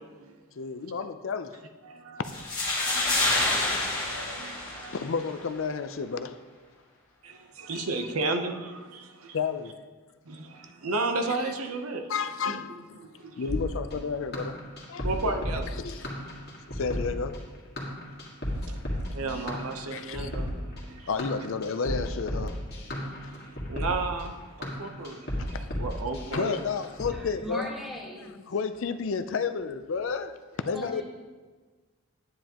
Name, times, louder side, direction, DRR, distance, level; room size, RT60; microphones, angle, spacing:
voice 1, 0.6-1.6 4.9-6.4 7.7-7.9 9.3-9.8 12.1-12.7 13.4-14.6 14.9-15.1 15.8-16.0 16.7-17.4 19.9-20.3 21.1-22.6 25.5-25.7 26.3-27.7 28.5-30.3 30.6-31.0, left 5 dB, 65° left, 0.4 m, -31 dB
voice 2, 1.8-2.2 2.7-5.0 7.2-9.4 10.3-12.1 12.4-12.6 13.0-13.4 15.0-15.7 18.7-18.8 19.1-21.1 23.3-25.4 25.8-26.6, right 3 dB, 85° right, 0.8 m, -34 dB
sound 1, 2.2-5.3, left 2 dB, 20° left, 1.9 m, -28 dB
sound 2, 13.5-27.1, equal, 45° left, 1.8 m, -33 dB
voice 3, 27.1-28.3 30.7-31.0, left 1 dB, ahead, 1.4 m, -38 dB
10.0 x 9.4 x 2.9 m
head